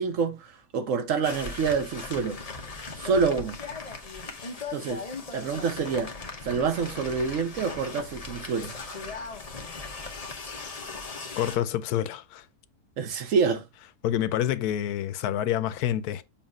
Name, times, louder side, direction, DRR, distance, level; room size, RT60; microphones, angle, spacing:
voice 1, 0.0-2.4 3.0-3.6 4.7-5.0 5.3-6.1 6.4-8.7 13.0-13.6, right 5 dB, 60° right, 1.0 m, -27 dB
sound 1, 1.2-11.6, left 4 dB, 30° left, 0.8 m, -38 dB
voice 2, 11.4-12.4 14.0-16.2, left 11 dB, 85° left, 1.1 m, -27 dB
7.2 x 2.5 x 5.4 m
omnidirectional pair, 1.6 m